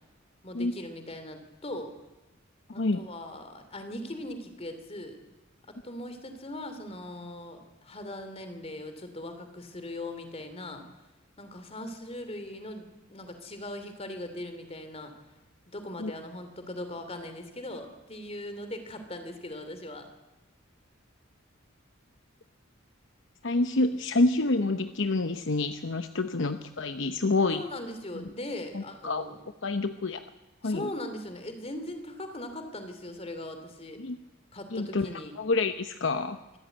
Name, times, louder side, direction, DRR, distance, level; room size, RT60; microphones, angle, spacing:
voice 1, 0.4-1.9 2.7-5.2 5.7-10.8 11.4-15.1 15.7-20.1 27.5-29.4 30.6-34.0 34.5-35.3, left 1 dB, 30° left, 8 dB, 3.0 m, -40 dB
voice 2, 23.4-27.7 28.1-28.2 28.7-29.2 29.6-30.3 30.6-30.9 34.0-34.2 34.7-35.1 35.4-36.4, left 2 dB, 60° left, 9 dB, 0.8 m, -27 dB
25.0 x 14.0 x 9.1 m, 1.1 s
head